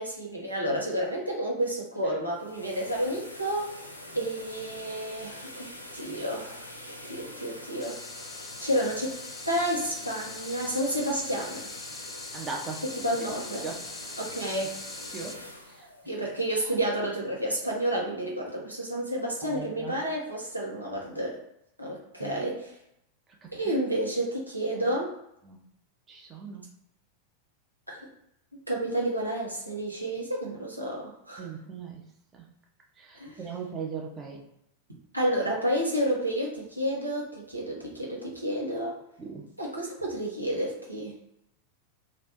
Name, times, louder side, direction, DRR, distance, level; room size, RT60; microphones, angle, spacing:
voice 1, 0.0-3.7 4.1-6.7 7.0-9.2 9.5-11.7 12.8-13.6 14.2-14.7 16.1-21.4 21.8-22.7 23.5-25.1 27.9-28.0 28.7-31.5 33.1-33.4 35.1-39.0 39.6-41.2, right 1 dB, 85° right, -3 dB, 1.1 m, -30 dB
sound 1, 2.2-17.1, left 1 dB, 85° left, 0.6 m, -44 dB
sound 2, 7.8-15.4, left 3 dB, 20° left, 0.4 m, -43 dB
voice 2, 12.3-12.8 13.6-13.8 15.1-15.4 15.7-15.9 19.4-20.0 22.2-22.4 23.4-23.5 25.4-25.6 26.1-26.6 31.4-32.1 32.3-32.4 33.0-34.4 39.2-39.4, right 5 dB, 25° right, 0 dB, 0.7 m, -38 dB
3.2 x 2.5 x 4.1 m, 0.79 s
figure-of-eight pair, 90°, 0 cm